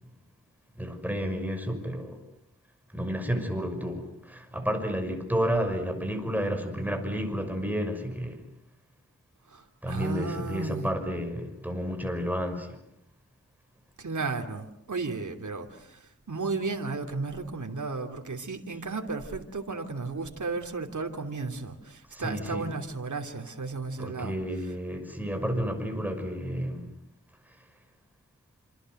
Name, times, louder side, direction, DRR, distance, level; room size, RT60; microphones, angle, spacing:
voice 1, 0.8-2.2 2.9-8.4 9.8-12.8 22.1-22.7 24.0-26.9, equal, 5° right, 6.1 m, -31 dB
voice 2, 9.5-10.9 14.0-16.0 16.3-24.3, right 3 dB, 75° right, 3.1 m, -34 dB
28.0 x 27.0 x 7.9 m
wide cardioid pair, 75°, 30 cm